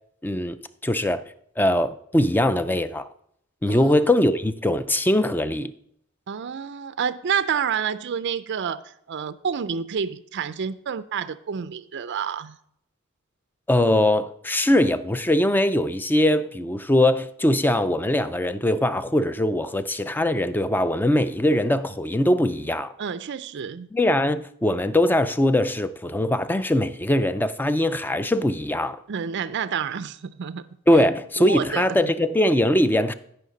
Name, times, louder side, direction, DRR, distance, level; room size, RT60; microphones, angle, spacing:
voice 1, 0.2-1.2 1.6-3.1 3.6-5.7 13.7-22.9 23.9-29.0 30.9-33.1, left 1 dB, 10° left, 0.4 m, -21 dB
voice 2, 6.3-12.6 23.0-23.9 29.1-30.7 31.4-32.1, right 7 dB, 55° right, 0.4 m, -29 dB
15.5 x 5.6 x 3.9 m
head